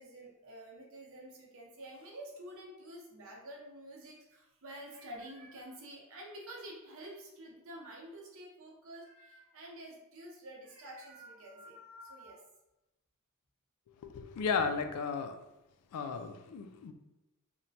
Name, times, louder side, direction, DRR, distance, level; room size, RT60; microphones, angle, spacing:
voice 1, 0.0-12.5, right 1 dB, 65° right, -2 dB, 0.7 m, -49 dB
voice 2, 14.0-15.4 15.9-16.9, left 5 dB, 85° left, 8 dB, 0.3 m, -34 dB
2.9 x 2.1 x 2.7 m, 0.97 s
head